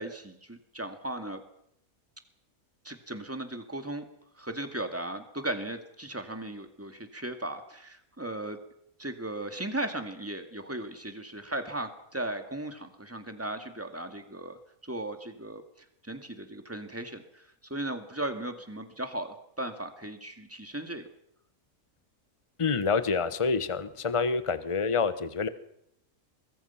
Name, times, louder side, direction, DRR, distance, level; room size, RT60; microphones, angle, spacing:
voice 1, 0.0-1.4 2.8-4.0 4.4-8.6 9.0-14.6 14.8-15.6 16.0-17.5 17.7-21.1, right 1 dB, 10° right, 7 dB, 2.1 m, -37 dB
voice 2, 22.6-25.5, left 5 dB, 25° left, 12 dB, 1.1 m, -27 dB
24.0 x 21.0 x 5.8 m, 0.73 s
omnidirectional pair, 1.5 m